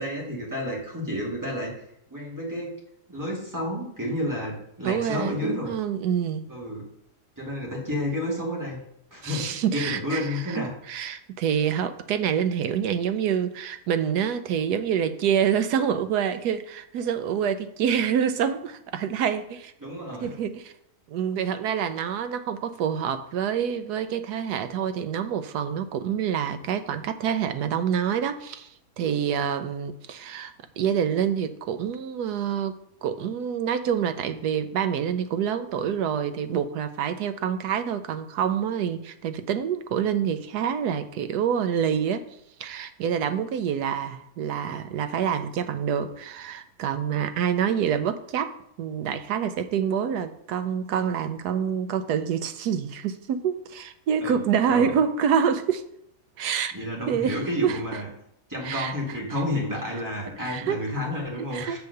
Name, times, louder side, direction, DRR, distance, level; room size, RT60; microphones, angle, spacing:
voice 1, 0.0-1.7 2.1-2.7 3.1-5.7 6.5-6.8 7.4-8.8 9.1-10.7 19.8-20.4 54.2-54.9 56.7-58.1 58.5-61.8, left 1 dB, 10° right, 2.4 m, -30 dB
voice 2, 4.8-6.5 9.2-19.7 20.2-20.7 21.1-28.7 29.0-32.7 33.0-42.3 42.6-55.8 56.4-56.7 57.1-57.8 58.6-58.9 59.3-59.4 60.4-60.9 61.5-61.8, right 8 dB, 80° right, 1.2 m, -27 dB
7.1 x 4.6 x 6.6 m
omnidirectional pair, 1.7 m